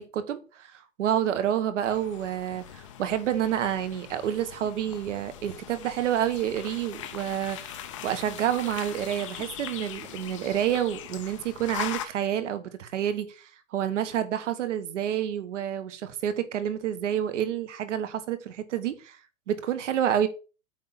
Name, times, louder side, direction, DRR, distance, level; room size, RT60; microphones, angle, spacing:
voice 1, 0.0-19.2 19.5-20.3, right 10 dB, 60° right, 1.4 m, -29 dB
sound 1, 1.8-12.1, left 10 dB, 25° left, 0.5 m, -41 dB
8.8 x 3.6 x 5.5 m
hypercardioid pair, 165°, 40 cm